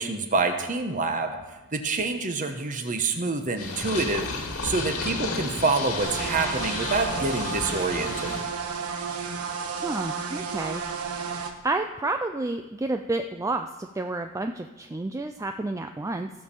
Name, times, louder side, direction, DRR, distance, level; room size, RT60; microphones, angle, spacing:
voice 1, 0.0-1.4 1.7-4.3 4.6-8.3, right 3 dB, 35° right, 6 dB, 1.1 m, -27 dB
Purr, 3.6-8.4, left 3 dB, 75° left, 2.0 m, -32 dB
sound 1, 6.0-11.5, right 5 dB, 80° right, 1.2 m, -32 dB
voice 2, 9.7-10.8 11.6-16.3, right 2 dB, 15° right, 6 dB, 0.3 m, -30 dB
15.5 x 5.4 x 6.8 m, 1.1 s
head